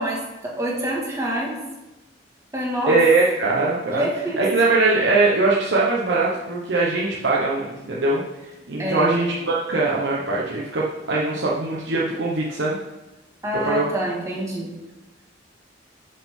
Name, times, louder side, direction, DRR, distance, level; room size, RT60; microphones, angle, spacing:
voice 1, 0.0-1.6 2.5-3.0 3.9-4.4 8.8-9.3 13.4-14.7, right 1 dB, 15° right, -3 dB, 1.9 m, -26 dB
voice 2, 2.9-4.1 4.4-8.2 8.7-12.8 13.5-13.9, right 3 dB, 75° right, -5 dB, 1.1 m, -21 dB
11.0 x 5.6 x 3.8 m, 1.1 s
head